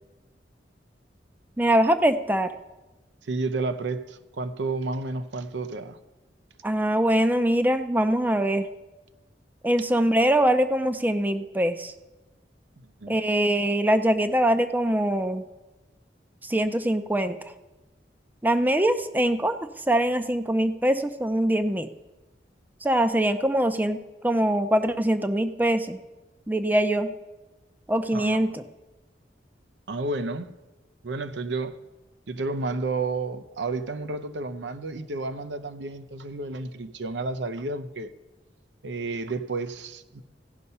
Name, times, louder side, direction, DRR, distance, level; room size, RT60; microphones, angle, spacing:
voice 1, 1.6-2.5 6.6-8.7 9.6-11.9 13.1-15.4 16.4-17.4 18.4-19.6 19.9-21.9 22.8-24.0 24.2-26.0 26.5-27.1 27.9-28.6, right 1 dB, 10° right, 0.5 m, -23 dB
voice 2, 3.2-6.0 12.8-13.2 28.1-28.5 29.9-30.5 31.0-31.8 32.3-38.1 38.8-40.2, right 3 dB, 80° right, 0.7 m, -31 dB
15.5 x 5.6 x 5.5 m
head